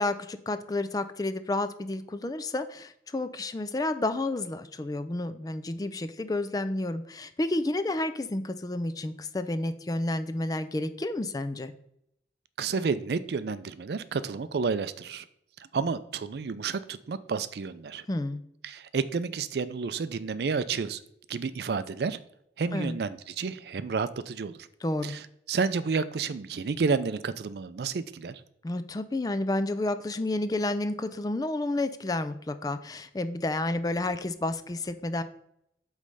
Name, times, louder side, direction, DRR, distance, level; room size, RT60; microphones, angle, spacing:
voice 1, 0.0-11.7 18.1-18.4 22.7-23.0 24.8-25.1 28.6-35.2, left 2 dB, 20° left, 10 dB, 0.4 m, -30 dB
voice 2, 12.6-15.3 15.7-18.1 18.6-21.0 21.3-22.2 22.6-24.7 25.0-28.4, right 5 dB, 65° right, 14 dB, 0.4 m, -30 dB
8.3 x 3.2 x 5.4 m, 0.75 s
head